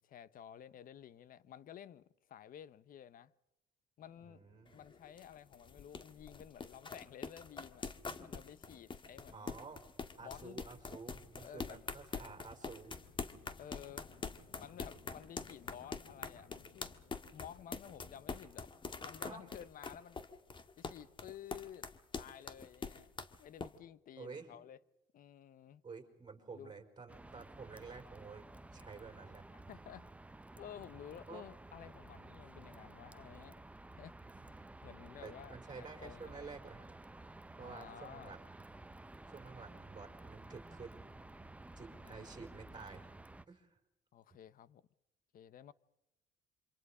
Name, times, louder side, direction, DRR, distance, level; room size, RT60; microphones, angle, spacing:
voice 1, 0.0-3.3 4.0-4.4 4.7-7.9 8.2-9.6 10.2-10.6 11.4-11.9 13.6-14.1 14.6-17.0 17.3-18.7 19.0-20.2 20.8-21.9 22.2-23.1 23.4-24.8 25.1-25.8 26.5-26.7 29.7-30.1 30.6-33.6 34.0-34.2 34.8-36.5 37.6-38.4 41.9-42.3 44.1-44.8 45.3-45.7, left 10 dB, 55° left, 1.0 m, -53 dB
sound 1, 4.0-18.5, left 5 dB, 90° left, 6.7 m, -66 dB
voice 2, 4.2-4.8 9.3-9.8 10.2-12.9 19.2-19.4 24.2-24.5 25.8-28.5 28.7-29.4 31.3-31.4 34.2-34.4 35.2-36.9 37.6-38.7 39.3-41.0 41.8-43.1 43.5-43.8, right 4 dB, 25° right, 4.9 m, -51 dB
sound 2, 4.7-23.7, left 4 dB, 30° left, 1.6 m, -45 dB
sound 3, 27.1-43.4, right 2 dB, 10° right, 0.7 m, -53 dB
27.5 x 25.5 x 5.0 m
cardioid pair, 110°, 17 cm